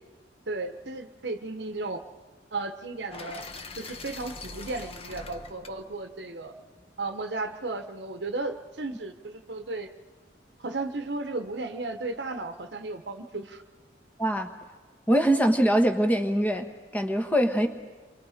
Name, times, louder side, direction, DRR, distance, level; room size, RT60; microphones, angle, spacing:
voice 1, 0.5-2.0 2.5-3.5 3.8-6.5 7.0-9.9 10.6-13.6, right 3 dB, 65° right, 7 dB, 1.1 m, -34 dB
sound 1, 3.1-7.2, left 3 dB, 30° left, 1.0 m, -43 dB
voice 2, 14.2-14.5 15.1-17.7, right 1 dB, 10° left, 6 dB, 1.4 m, -23 dB
29.5 x 23.5 x 5.0 m, 1.3 s
head